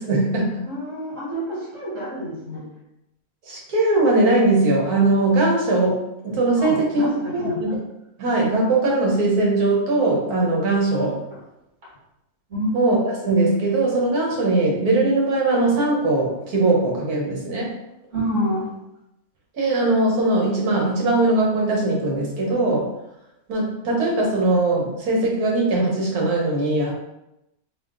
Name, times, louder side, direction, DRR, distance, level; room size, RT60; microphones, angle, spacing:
voice 1, 0.0-0.6 3.5-6.0 6.2-7.8 8.2-11.2 12.7-17.7 19.5-22.9 23.5-26.9, right 2 dB, 80° right, -2 dB, 1.6 m, -20 dB
voice 2, 0.6-2.6 6.6-7.6 12.5-12.8 18.1-18.7, equal, 55° right, -6 dB, 2.0 m, -27 dB
3.6 x 2.8 x 3.7 m, 0.87 s
omnidirectional pair, 1.6 m